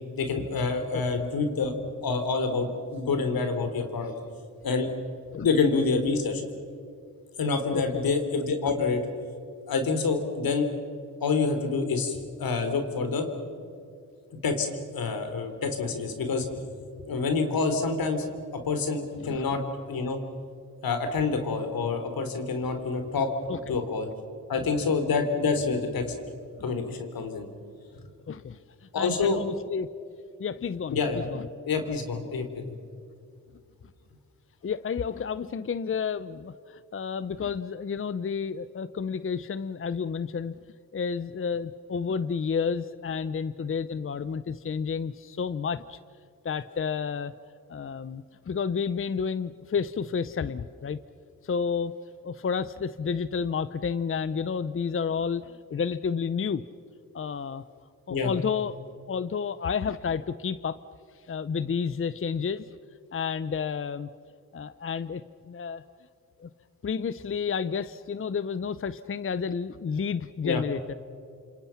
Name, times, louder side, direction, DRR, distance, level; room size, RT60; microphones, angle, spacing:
voice 1, 0.2-1.7 2.0-4.1 4.6-4.9 5.4-6.4 7.4-9.1 9.7-10.7 11.2-13.3 14.4-14.7 14.9-16.5 17.1-18.3 18.5-20.2 20.8-24.1 24.5-26.1 26.6-27.5 28.9-29.4 30.9-31.2 31.7-32.7 58.1-58.3 70.4-70.6, left 4 dB, 80° left, 6 dB, 3.5 m, -27 dB
voice 2, 7.7-8.1 19.2-19.4 23.5-23.7 28.3-29.9 30.4-31.5 34.6-40.5 40.9-46.0 46.4-47.3 47.7-51.0 51.4-51.9 52.2-56.6 57.1-57.6 58.1-58.8 59.1-60.8 61.3-62.6 63.1-64.1 64.5-65.8 66.4-66.5 66.8-70.9, left 6 dB, 35° left, 14 dB, 0.7 m, -31 dB
29.0 x 26.5 x 5.9 m, 2.3 s
cardioid pair, 75°, 35 cm